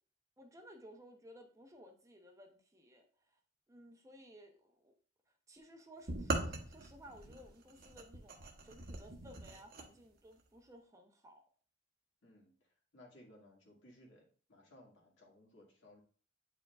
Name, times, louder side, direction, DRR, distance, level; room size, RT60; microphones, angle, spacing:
voice 1, 0.4-3.4 3.7-4.9 5.5-8.4 8.6-11.4, equal, 15° right, 4 dB, 0.7 m, -57 dB
sound 1, 6.1-9.9, right 2 dB, 55° right, 0.9 m, -41 dB
voice 2, 12.2-12.5 12.9-14.2 14.5-16.0, left 1 dB, 75° left, -2 dB, 2.0 m, -60 dB
8.6 x 4.7 x 2.3 m, 0.42 s
head